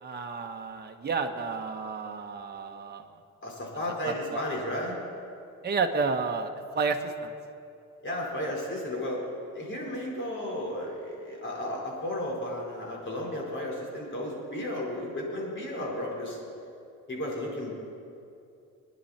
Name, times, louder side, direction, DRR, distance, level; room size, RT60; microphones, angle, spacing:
voice 1, 0.0-3.0 4.0-4.4 5.6-6.5 6.7-7.3, right 4 dB, 35° right, 3 dB, 1.4 m, -31 dB
voice 2, 3.4-5.0 8.0-9.2 9.5-16.4 17.1-17.8, left 1 dB, 40° left, -3 dB, 4.7 m, -33 dB
25.0 x 10.5 x 4.4 m, 2.6 s
cardioid pair, 90°, 30 cm